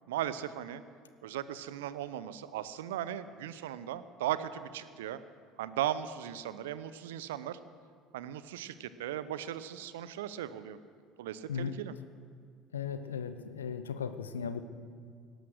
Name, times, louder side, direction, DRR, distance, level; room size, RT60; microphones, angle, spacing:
voice 1, 0.1-0.8 1.2-5.2 5.6-7.6 8.1-10.8 11.2-11.9, right 11 dB, 70° right, 15 dB, 0.7 m, -37 dB
voice 2, 12.7-14.6, left 7 dB, 80° left, 11 dB, 0.8 m, -36 dB
18.5 x 11.5 x 6.5 m, 2.1 s
figure-of-eight pair, 65°, 0 cm